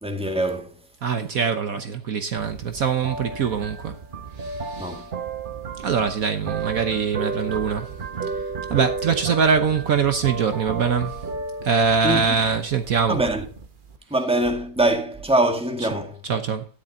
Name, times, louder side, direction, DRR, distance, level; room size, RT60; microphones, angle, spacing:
voice 1, 0.0-0.7 4.8-5.0 12.0-12.2 13.1-13.4 14.1-16.2, right 1 dB, 5° right, 1.8 m, -23 dB
voice 2, 1.0-4.0 4.4-5.1 5.8-8.0 8.3-11.3 11.6-13.2 15.8-15.9 16.2-16.6, right 6 dB, 60° right, 1.3 m, -23 dB
sound 1, 2.4-14.0, right 4 dB, 40° right, 0.9 m, -33 dB
13.0 x 10.5 x 2.7 m
omnidirectional pair, 1.8 m